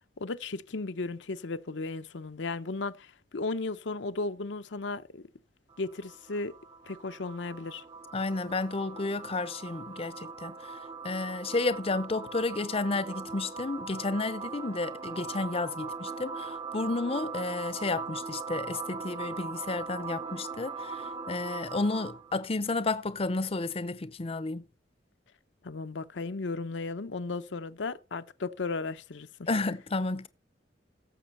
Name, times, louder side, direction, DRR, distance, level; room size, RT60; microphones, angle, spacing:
voice 1, 0.2-5.2 5.8-6.5 6.9-7.8 25.6-29.5, left 3 dB, 75° left, 0.7 m, -35 dB
sound 1, 5.7-22.4, right 5 dB, 25° right, 0.8 m, -40 dB
voice 2, 8.1-10.5 11.0-24.6 29.5-30.3, left 3 dB, 30° left, 0.6 m, -32 dB
16.5 x 7.1 x 4.2 m
head